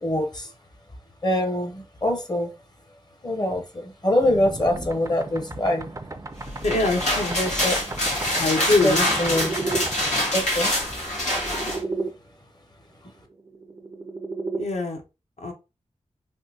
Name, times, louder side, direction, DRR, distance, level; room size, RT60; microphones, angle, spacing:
voice 1, 0.0-0.5 1.2-2.5 3.2-5.9 7.4-7.7 8.8-8.9 9.2-9.5 10.3-10.7, left 1 dB, 35° left, 5 dB, 0.8 m, -24 dB
sound 1, 4.2-12.1 13.4-14.7, right 3 dB, 25° right, 0.4 m, -34 dB
sound 2, 6.5-11.8, left 1 dB, 90° left, 1.6 m, -25 dB
voice 2, 6.6-7.4 8.4-9.1 14.6-15.0 15.4-15.5, left 3 dB, 70° left, 3 dB, 0.8 m, -23 dB
3.5 x 2.5 x 2.7 m, 0.28 s
wide cardioid pair, 75°, 12 cm